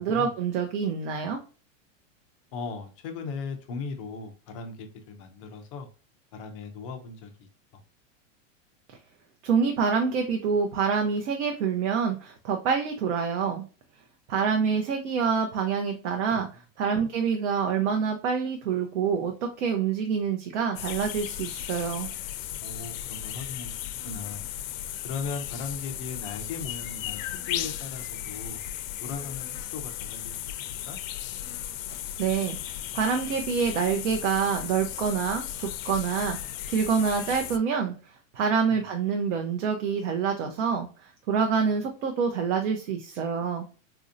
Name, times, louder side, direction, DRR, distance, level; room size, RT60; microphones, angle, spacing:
voice 1, 0.0-1.4 8.9-9.0 9.4-13.6 14.3-16.5 16.8-19.3 19.6-22.1 32.2-36.4 36.7-37.9 38.3-40.9 41.3-43.7, right 6 dB, 65° right, 4 dB, 0.7 m, -26 dB
voice 2, 2.5-5.9 6.3-7.5 16.9-17.1 22.6-23.7 24.0-24.4 25.0-28.6 29.0-30.6 30.9-31.0 38.7-38.8, left 4 dB, 25° left, 4 dB, 0.3 m, -38 dB
sound 1, 20.8-37.6, left 11 dB, 80° left, 0.5 m, -36 dB
4.1 x 2.6 x 2.5 m, 0.36 s
supercardioid pair, 165°, 39 cm